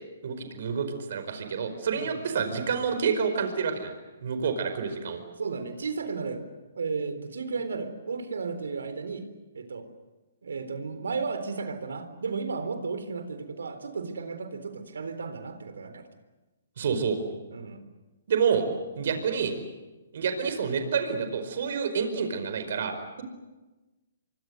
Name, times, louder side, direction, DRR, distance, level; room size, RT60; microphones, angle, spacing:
voice 1, 0.2-3.9 4.2-5.2 16.8-17.2 18.3-18.6 19.0-19.6 20.1-23.2, right 6 dB, 60° right, 8 dB, 4.9 m, -28 dB
voice 2, 5.4-6.5 6.7-9.2 9.5-9.9 10.4-16.1 17.5-17.8 19.1-19.2, right 4 dB, 85° right, 10 dB, 3.9 m, -34 dB
25.5 x 24.5 x 8.0 m, 1.1 s
hypercardioid pair, 150°, 0 cm